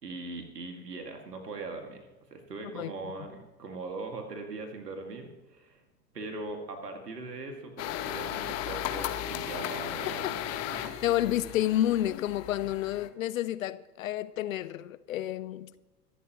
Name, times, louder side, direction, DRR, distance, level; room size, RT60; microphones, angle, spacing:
voice 1, 0.0-2.1 2.3-5.8 6.1-11.0, right 3 dB, 75° right, 2.4 m, -40 dB
sound 1, 7.8-13.1, left 11 dB, 30° left, 1.2 m, -35 dB
voice 2, 11.0-15.7, left 13 dB, 55° left, 0.7 m, -30 dB
24.0 x 12.5 x 3.1 m
figure-of-eight pair, 90°, 48 cm